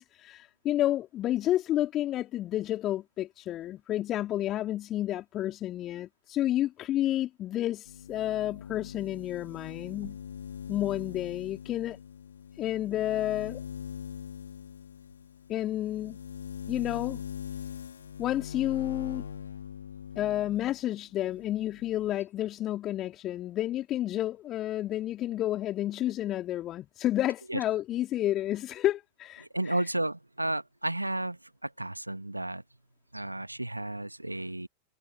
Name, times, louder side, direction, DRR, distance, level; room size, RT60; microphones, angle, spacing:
voice 1, 0.0-10.2 10.7-12.0 12.6-13.6 15.5-16.2 16.7-17.2 18.2-19.2 20.1-29.8, left 13 dB, 30° left, 3.5 m, -30 dB
sound 1, 7.9-20.8 21.1-22.2, left 8 dB, 70° left, 2.8 m, -42 dB
voice 2, 29.5-32.6 33.1-34.7, right 1 dB, 85° right, 1.7 m, -32 dB
figure-of-eight pair, 90°, 0 cm